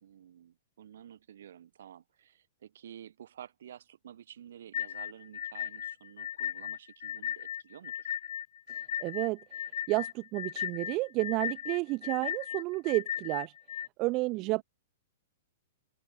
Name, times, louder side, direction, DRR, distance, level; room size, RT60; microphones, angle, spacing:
voice 1, 0.0-8.1 14.3-14.6, right 10 dB, 65° right, 2.1 m, -51 dB
sound 1, 4.7-13.9, left 10 dB, 65° left, 0.3 m, -37 dB
voice 2, 8.7-9.4 9.9-13.5 14.0-14.6, right 23 dB, 40° right, 0.4 m, -31 dB
open air
hypercardioid pair, 115°, 0 cm